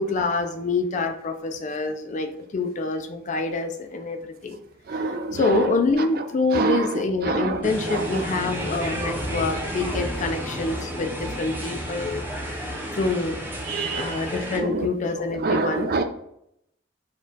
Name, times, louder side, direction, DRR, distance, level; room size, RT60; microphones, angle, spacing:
voice 1, 0.0-4.6 5.3-12.2 12.6-13.4 13.9-15.9, left 3 dB, 40° left, 0.4 m, -26 dB
voice 2, 4.9-5.7 6.5-6.9 7.2-8.2 13.7-14.2 14.5-14.9 15.4-16.0, right 3 dB, 50° right, 0.4 m, -26 dB
sound 1, 7.6-14.6, equal, 10° right, 0.7 m, -31 dB
4.2 x 2.4 x 3.9 m
head